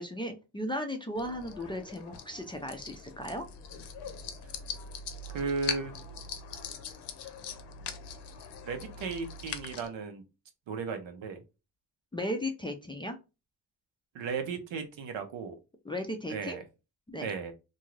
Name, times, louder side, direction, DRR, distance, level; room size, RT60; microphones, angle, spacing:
voice 1, 0.0-3.5 12.1-13.2 15.8-16.6 17.1-17.3, left 1 dB, 15° left, 3 dB, 0.3 m, -36 dB
sound 1, 1.2-9.9, left 5 dB, 70° left, 0.6 m, -41 dB
voice 2, 5.3-5.9 8.7-10.2 10.7-11.4 14.1-15.5 16.3-16.6 17.2-17.5, right 5 dB, 85° right, 6 dB, 0.9 m, -35 dB
2.6 x 2.4 x 3.0 m, 0.28 s
cardioid pair, 110°, 44 cm